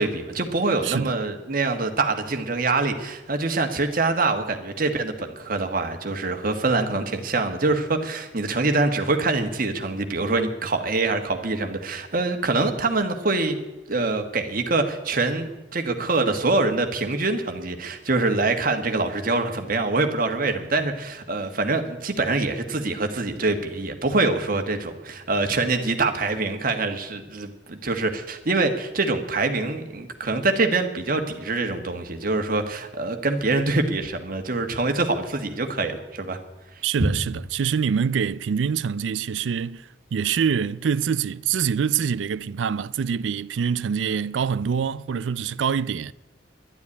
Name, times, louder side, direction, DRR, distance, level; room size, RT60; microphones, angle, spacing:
voice 1, 0.0-13.5 13.9-36.4 37.0-37.1, right 3 dB, 50° right, 1.6 m, -24 dB
voice 2, 0.8-1.2 36.8-46.1, right 7 dB, 90° right, 0.4 m, -25 dB
11.5 x 10.5 x 9.8 m
head